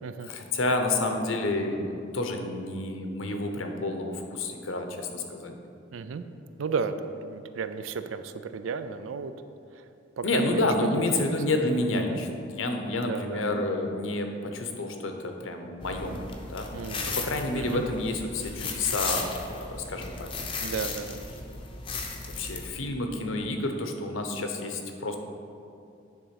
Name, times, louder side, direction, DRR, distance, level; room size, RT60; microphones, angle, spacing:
voice 1, 0.2-5.6 10.2-16.7 17.1-20.3 20.6-20.7 22.4-25.2, left 2 dB, 85° left, 4 dB, 0.8 m, -29 dB
voice 2, 5.9-6.2 6.6-9.3 9.7-9.8 10.2-10.7 11.0-11.7 12.1-12.2 13.0-13.5 16.7-17.2 17.5-17.8 20.6-21.2, right 5 dB, 85° right, 11 dB, 0.4 m, -34 dB
sound 1, 15.8-22.7, left 4 dB, 25° left, 0.6 m, -35 dB
9.6 x 3.7 x 5.9 m, 2.5 s
head